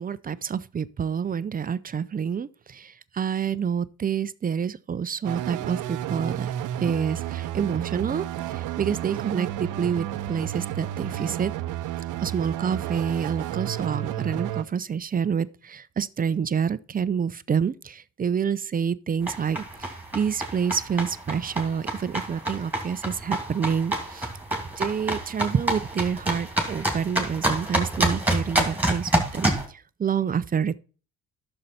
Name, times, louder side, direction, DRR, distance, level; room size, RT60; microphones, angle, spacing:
voice 1, 0.0-6.5 6.8-11.5 12.2-24.3 24.8-30.8, right 7 dB, 30° right, 0.5 m, -28 dB
sound 1, 5.2-14.6, right 12 dB, 85° right, 0.7 m, -31 dB
sound 2, 19.2-29.6, right 1 dB, 5° right, 2.7 m, -28 dB
11.0 x 6.6 x 4.2 m
cardioid pair, 90°, 30 cm